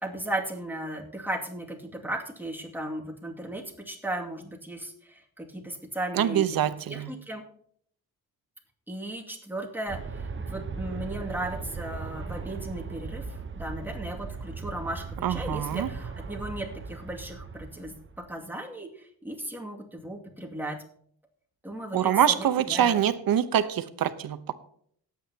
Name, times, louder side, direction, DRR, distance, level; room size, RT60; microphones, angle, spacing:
voice 1, 0.0-6.4 6.9-7.4 8.9-20.8 21.6-23.0, right 1 dB, 5° right, 0 dB, 2.4 m, -36 dB
voice 2, 6.1-7.1 15.2-15.9 21.9-24.6, right 10 dB, 65° right, 11 dB, 1.0 m, -25 dB
Aircraft, 9.9-18.3, right 5 dB, 30° right, 1.0 m, -38 dB
19.0 x 8.7 x 2.9 m, 0.63 s
cardioid pair, 85°, 37 cm